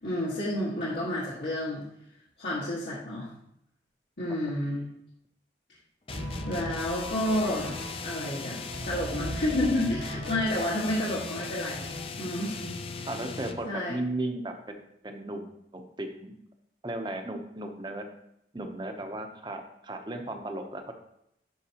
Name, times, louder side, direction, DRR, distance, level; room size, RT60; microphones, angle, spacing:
voice 1, 0.0-1.8 2.4-3.3 4.2-4.8 6.4-7.7 8.0-8.6 8.8-13.1 13.7-13.9, left 1 dB, 75° left, -8 dB, 1.6 m, -30 dB
sound 1, 6.1-13.7, left 4 dB, 30° left, 0.4 m, -38 dB
sound 2, 6.1-12.0, equal, 80° right, 2.1 m, -40 dB
voice 2, 13.1-16.3 16.8-18.1 18.5-20.9, right 1 dB, 25° right, 5 dB, 0.7 m, -36 dB
11.0 x 4.7 x 2.9 m, 0.77 s
head